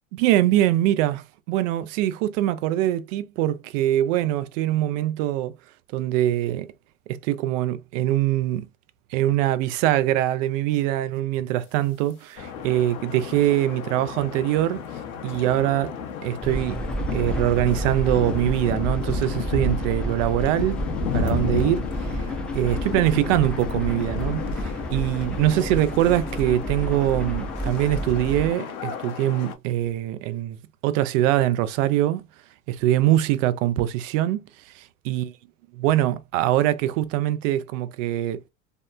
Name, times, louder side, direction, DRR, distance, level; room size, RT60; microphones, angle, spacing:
voice 1, 0.1-5.5 5.9-6.7 7.1-8.7 9.1-14.8 15.2-16.8 17.1-20.8 21.1-32.2 32.7-35.3 35.8-38.4, right 13 dB, 65° right, 0.5 m, -23 dB
sound 1, 12.4-29.6, left 5 dB, 80° left, 0.7 m, -33 dB
sound 2, 16.4-28.5, equal, 5° left, 0.4 m, -30 dB
2.7 x 2.1 x 2.2 m
hypercardioid pair, 85°, 42 cm